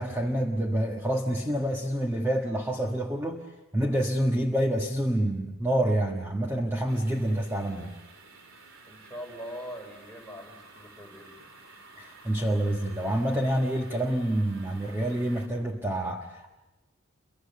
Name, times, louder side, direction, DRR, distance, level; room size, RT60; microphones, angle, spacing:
voice 1, 0.0-3.4 3.7-7.9 12.0-16.5, right 1 dB, 10° right, 1 dB, 1.5 m, -27 dB
sound 1, 6.9-15.5, right 3 dB, 70° right, 3.2 m, -52 dB
voice 2, 8.9-11.5, equal, 5° left, -1 dB, 4.1 m, -42 dB
29.5 x 24.0 x 6.8 m, 1.1 s
head